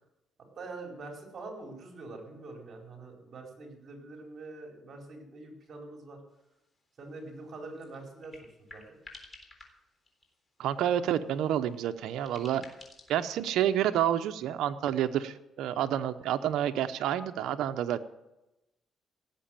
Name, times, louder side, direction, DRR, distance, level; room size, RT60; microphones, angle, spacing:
voice 1, 0.6-6.2 7.0-8.8, right 3 dB, 50° right, 1 dB, 4.8 m, -44 dB
sound 1, 6.4-6.5 6.8-6.9 7.1-7.3 7.6-10.5 11.1-13.5, left 3 dB, 30° left, 3.6 m, -53 dB
voice 2, 10.6-12.7 13.1-18.1, right 11 dB, 85° right, 9 dB, 0.8 m, -29 dB
17.0 x 7.6 x 8.9 m, 0.94 s
cardioid pair, 90°, 0 cm